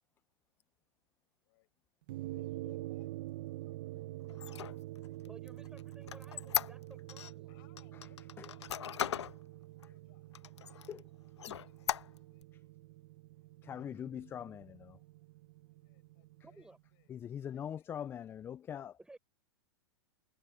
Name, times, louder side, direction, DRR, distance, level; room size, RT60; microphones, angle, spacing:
voice 1, 2.1-6.5 7.5-8.7 9.3-12.5 13.4-14.6 15.6-17.1 17.5-17.9, left 22 dB, 55° left, 7.6 m, -70 dB
sound 1, 2.1-16.6, right 17 dB, 55° right, 0.9 m, -47 dB
Squeak, 4.3-7.3 7.8-9.4 9.8-9.9 10.3-11.0 11.4-12.4, left 10 dB, 85° left, 1.2 m, -38 dB
voice 2, 5.3-7.5 16.4-16.8 19.0-19.2, right 2 dB, 5° right, 4.6 m, -56 dB
voice 3, 13.6-15.0 17.1-18.9, left 9 dB, 15° left, 0.3 m, -42 dB
hypercardioid pair, 125°, 14 cm